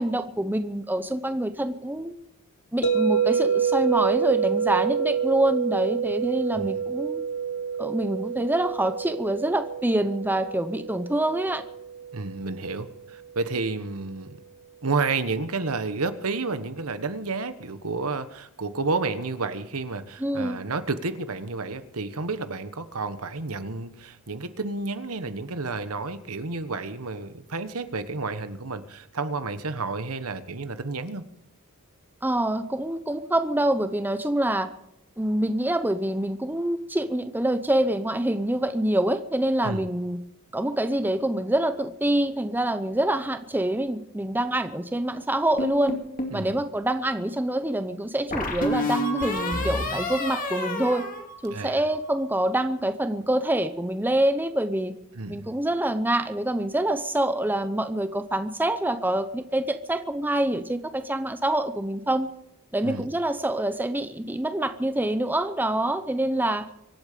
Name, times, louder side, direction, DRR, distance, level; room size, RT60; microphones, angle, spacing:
voice 1, 0.0-2.1 2.7-7.2 7.8-11.6 20.2-20.6 32.2-34.7 35.2-40.2 40.5-46.0 46.3-51.1 51.4-54.9 55.3-62.3 62.7-66.7, right 1 dB, 10° right, 10 dB, 0.8 m, -26 dB
sound 1, 2.8-12.9, right 7 dB, 55° left, 1.3 m, -28 dB
voice 2, 12.1-14.4 14.8-31.2 39.6-39.8 46.3-46.6 51.5-51.8 55.1-55.5 62.8-63.1, right 3 dB, 75° right, 11 dB, 1.3 m, -31 dB
sound 2, 45.6-46.4 48.3-51.9, left 1 dB, 40° left, 2.4 m, -29 dB
24.5 x 8.8 x 6.7 m, 0.81 s
head